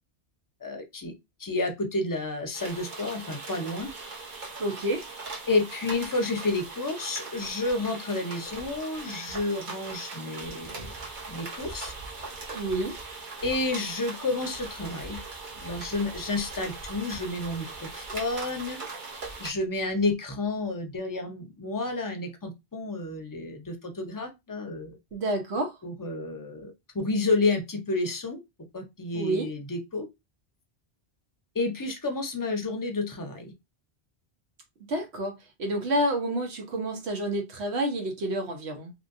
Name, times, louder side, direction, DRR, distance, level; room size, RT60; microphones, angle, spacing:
voice 1, 0.6-1.1 1.4-3.9 5.5-10.8 11.3-11.9 13.4-15.2 15.6-17.7 17.9-18.8 19.4-25.0 25.8-28.4 28.7-30.1 31.5-33.5, left 2 dB, 25° left, 0.5 m, -30 dB
sound 1, 2.5-19.5, right 3 dB, 50° right, 0.9 m, -40 dB
voice 2, 4.6-5.0 12.5-12.9 25.1-25.7 29.1-29.5 34.9-35.3 35.6-38.9, right 1 dB, 85° right, 1.2 m, -29 dB
2.9 x 2.7 x 2.6 m
omnidirectional pair, 1.1 m